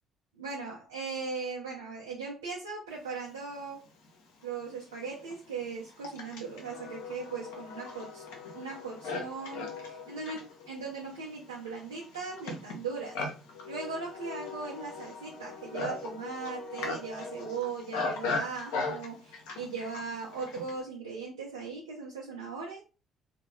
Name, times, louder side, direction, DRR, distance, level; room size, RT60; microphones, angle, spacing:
voice 1, 0.3-3.8 4.4-8.2 8.5-13.2 13.7-22.8, right 5 dB, 90° right, -4 dB, 0.5 m, -38 dB
Livestock farm animals working animals, 4.0-4.1 4.9-20.8, left 3 dB, 75° left, 0.6 m, -38 dB
2.3 x 2.1 x 3.0 m, 0.32 s
hypercardioid pair, 50°, 0 cm